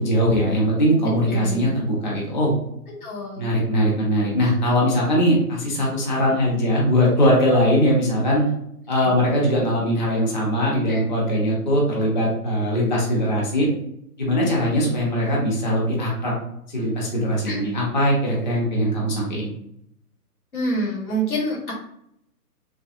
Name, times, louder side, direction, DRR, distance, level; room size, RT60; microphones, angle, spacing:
voice 1, 0.0-2.6 3.4-8.4 8.9-13.7 14.2-16.3 16.7-19.5, equal, 30° left, -3 dB, 0.8 m, -21 dB
voice 2, 1.2-1.7 3.0-3.5 9.0-9.1 10.9-11.0 17.4-17.7 20.5-21.7, right 1 dB, 65° left, -3 dB, 1.3 m, -27 dB
3.3 x 2.4 x 2.5 m, 0.73 s
figure-of-eight pair, 135°, 47 cm